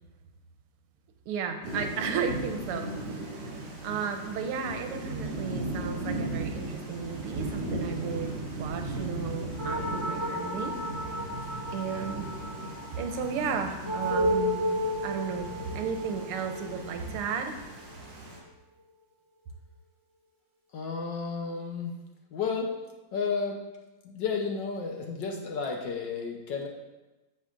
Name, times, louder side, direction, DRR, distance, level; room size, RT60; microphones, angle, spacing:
voice 1, 1.3-2.9 3.2-3.3 3.8-10.7 11.7-12.3 13.0-14.7 15.0-17.6, right 6 dB, 90° right, 6 dB, 1.7 m, -34 dB
Thunder / Rain, 1.6-18.4, right 2 dB, 65° right, 2.7 m, -37 dB
sound 1, 9.6-18.4, equal, 45° right, 0.3 m, -33 dB
voice 2, 20.7-22.0 22.3-22.7 23.1-23.6 24.0-26.7, left 5 dB, 65° left, 2 dB, 1.3 m, -32 dB
10.0 x 7.2 x 2.5 m, 1.1 s
omnidirectional pair, 2.4 m